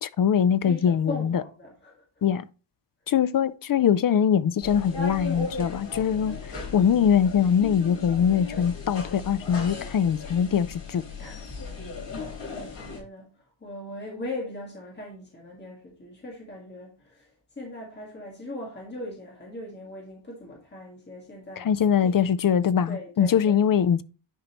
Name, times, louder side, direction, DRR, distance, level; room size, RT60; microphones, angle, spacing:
voice 1, 0.0-1.4 2.2-2.5 3.1-11.0 21.6-24.0, left 8 dB, 50° left, 0.5 m, -22 dB
voice 2, 0.6-2.0 11.2-11.4 12.1-21.7 22.0-22.2 22.9-23.6, left 1 dB, 20° left, 1.8 m, -39 dB
sound 1, 4.6-13.0, left 4 dB, 65° left, 3.4 m, -37 dB
10.0 x 5.3 x 3.0 m
wide cardioid pair, 175°, 46 cm